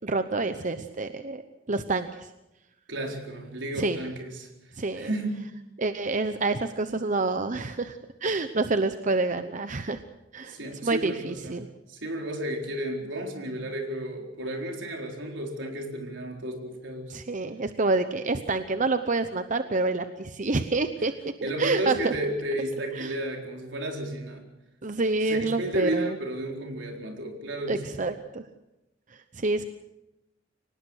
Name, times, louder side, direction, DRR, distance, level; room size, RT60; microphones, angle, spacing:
voice 1, 0.0-1.4 1.7-2.1 3.8-4.0 4.8-5.1 5.8-10.0 10.3-11.7 17.1-22.1 23.0-23.1 24.8-26.1 27.7-28.4 29.3-29.6, right 3 dB, 45° right, 10 dB, 0.8 m, -28 dB
voice 2, 2.9-4.5 5.0-5.5 10.5-11.6 11.9-17.1 21.4-24.4 25.3-27.9, right 1 dB, 85° right, 2 dB, 4.2 m, -32 dB
24.0 x 19.0 x 6.4 m, 0.92 s
head